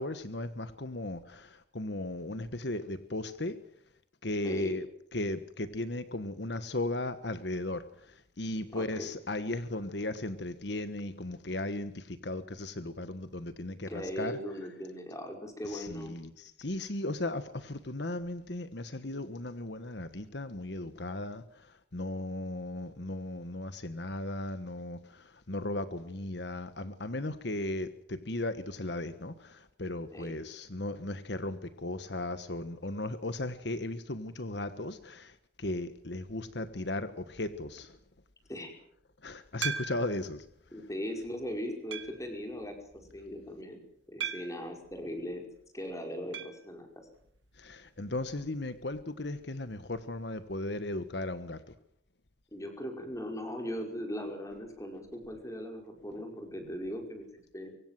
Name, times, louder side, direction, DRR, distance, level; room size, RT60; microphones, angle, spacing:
voice 1, 0.0-3.6 4.2-4.9 5.1-14.3 15.6-38.0 39.2-40.4 47.6-51.6, left 2 dB, 60° left, 11 dB, 1.3 m, -36 dB
voice 2, 4.4-4.8 8.7-9.1 13.9-16.2 30.1-30.4 38.5-38.7 40.7-42.8 43.1-43.8 44.1-45.4 45.7-47.1 52.5-57.7, equal, 15° left, 4 dB, 5.3 m, -39 dB
sound 1, 39.6-40.3 40.9-41.0 41.9-42.3 44.2-44.7 46.3-46.6 46.9-47.0 47.2-47.3 49.4-49.5, right 6 dB, 80° right, 1.9 m, -37 dB
24.5 x 24.5 x 7.6 m, 0.70 s
head